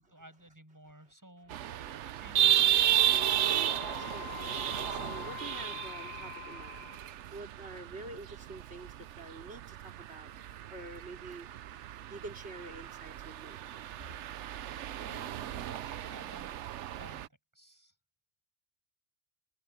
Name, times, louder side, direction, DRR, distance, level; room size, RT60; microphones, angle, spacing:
voice 1, 0.0-2.8 15.0-16.5 16.9-17.3 17.5-17.9, right 1 dB, 10° right, 7.7 m, -54 dB
sound 1, 1.5-17.3, right 11 dB, 65° right, 0.8 m, -33 dB
Wind instrument woodwind instrument, 2.9-7.1, left 17 dB, 65° left, 4.2 m, -45 dB
voice 2, 3.1-6.9 7.3-10.3 10.7-11.5 12.1-13.6, right 2 dB, 45° right, 3.5 m, -47 dB
omnidirectional pair, 1.5 m